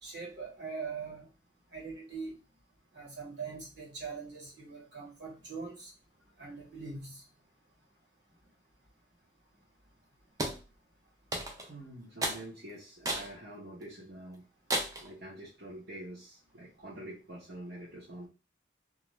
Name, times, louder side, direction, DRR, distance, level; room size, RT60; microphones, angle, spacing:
voice 1, 0.0-1.3 1.7-2.4 2.9-5.9 6.4-7.2, right 5 dB, 75° right, -2 dB, 1.4 m, -42 dB
sound 1, 10.4-10.6 11.3-11.7 12.2-12.4 13.0-13.3 13.8-13.9 14.7-15.1, right 1 dB, 20° right, 0.4 m, -33 dB
voice 2, 11.6-14.4 15.0-18.3, right 1 dB, 55° right, -7 dB, 0.8 m, -46 dB
2.4 x 2.3 x 3.0 m, 0.31 s
head